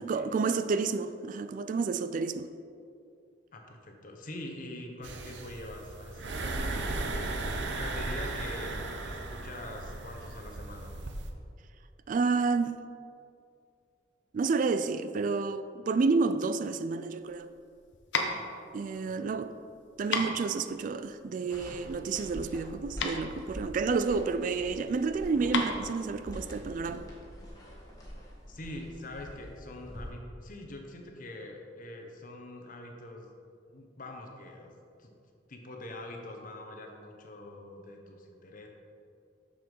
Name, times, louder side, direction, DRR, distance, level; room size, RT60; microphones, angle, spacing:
voice 1, 0.0-2.5 12.1-12.8 14.3-17.5 18.7-19.5 20.0-27.1, right 4 dB, 45° right, 0.3 m, -30 dB
voice 2, 3.5-11.0 19.1-19.4 28.5-33.3 33.7-35.1 35.5-38.7, left 1 dB, 50° left, 1.0 m, -44 dB
sound 1, 5.0-11.3, right 2 dB, 75° right, 0.7 m, -36 dB
sound 2, 17.2-27.0, left 3 dB, 85° left, 0.9 m, -36 dB
sound 3, 21.5-30.1, equal, 20° left, 1.6 m, -45 dB
6.8 x 6.4 x 5.3 m
head